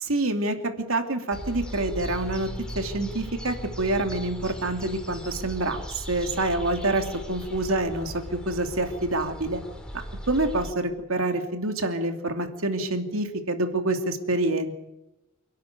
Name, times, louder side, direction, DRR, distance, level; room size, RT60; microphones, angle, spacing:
voice 1, 0.0-2.5 2.7-9.6 10.3-14.7, right 2 dB, 70° right, 5 dB, 2.9 m, -27 dB
sound 1, 1.3-10.7, equal, 5° left, 3.1 m, -38 dB
28.0 x 12.5 x 9.5 m, 0.97 s
head